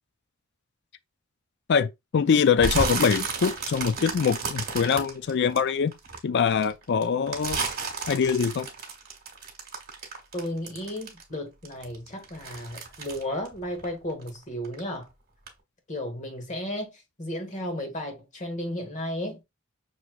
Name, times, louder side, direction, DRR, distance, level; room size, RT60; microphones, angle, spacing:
voice 1, 1.7-5.9 6.2-7.6 8.1-8.7, left 6 dB, 55° left, 0.4 m, -23 dB
sound 1, 2.6-6.2 6.6-11.4 11.6-14.4 14.6-15.0 15.5-15.6, right 4 dB, 50° right, 1.4 m, -32 dB
voice 2, 10.3-15.1 15.9-19.4, left 1 dB, 35° left, 1.3 m, -34 dB
6.0 x 2.9 x 2.3 m
head